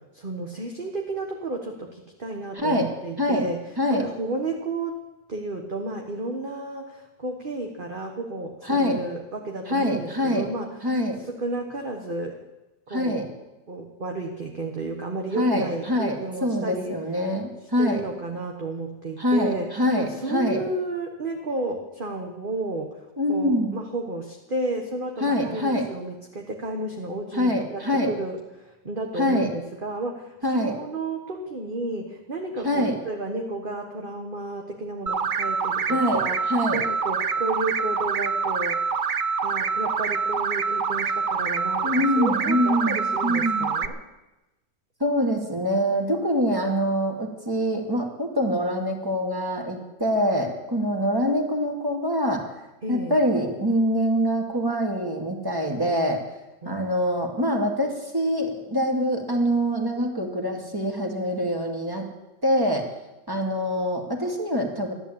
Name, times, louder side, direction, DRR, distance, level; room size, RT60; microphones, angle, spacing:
voice 1, 0.0-4.9 5.3-10.8 11.2-12.4 12.9-13.3 13.7-16.9 17.8-19.7 20.0-36.4 36.7-39.1 39.4-44.0 52.8-53.2 56.6-57.4, right 2 dB, 30° right, 2 dB, 1.4 m, -32 dB
voice 2, 2.6-2.9 3.2-3.4 3.8-4.1 8.6-9.0 9.7-10.5 10.8-11.2 12.9-13.2 15.4-18.0 19.2-20.6 23.2-23.8 25.2-25.9 27.3-28.1 29.2-29.5 30.4-30.7 32.6-32.9 35.9-36.2 36.5-36.8 41.8-43.7 45.0-52.4 52.9-56.2 56.7-62.1 62.4-62.8 63.3-64.9, equal, 10° right, 2 dB, 2.3 m, -24 dB
sound 1, 35.1-43.9, right 5 dB, 65° right, 0.5 m, -26 dB
14.5 x 11.0 x 8.7 m, 1.0 s
omnidirectional pair, 1.9 m